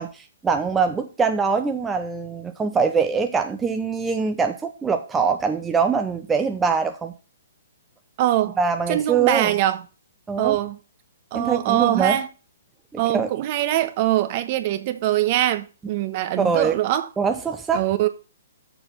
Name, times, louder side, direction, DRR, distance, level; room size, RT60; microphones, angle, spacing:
voice 1, 0.0-7.1 8.6-9.5 10.3-10.6 11.3-12.2 13.1-13.3 16.4-16.8 17.2-17.8, right 5 dB, 10° right, 0.8 m, -23 dB
voice 2, 8.2-8.6 8.9-9.8 10.4-10.8 11.3-12.3 13.0-17.1 17.7-18.1, right 13 dB, 40° right, 1.2 m, -22 dB
6.9 x 6.3 x 7.6 m
hypercardioid pair, 140°, 0 cm